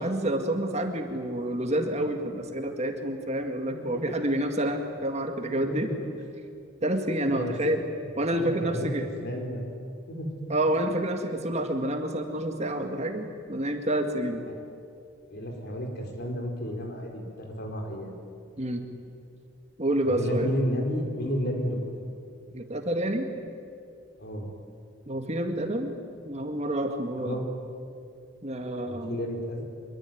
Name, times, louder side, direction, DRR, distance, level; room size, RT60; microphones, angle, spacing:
voice 1, 0.0-5.9 6.8-7.8 8.2-9.1 10.5-14.5 18.6-18.9 19.8-20.5 22.5-23.3 25.1-25.9 26.2-27.4 28.4-29.2, right 1 dB, 35° right, 5 dB, 2.1 m, -28 dB
voice 2, 3.8-4.2 5.5-6.1 7.3-7.9 8.3-8.9 9.2-9.8 10.1-10.5 11.6-11.7 14.5-14.6 15.3-18.2 20.0-21.8 24.2-24.5 27.2-27.5 28.9-29.6, equal, 55° left, 2 dB, 4.9 m, -32 dB
25.0 x 23.0 x 9.4 m, 2.4 s
head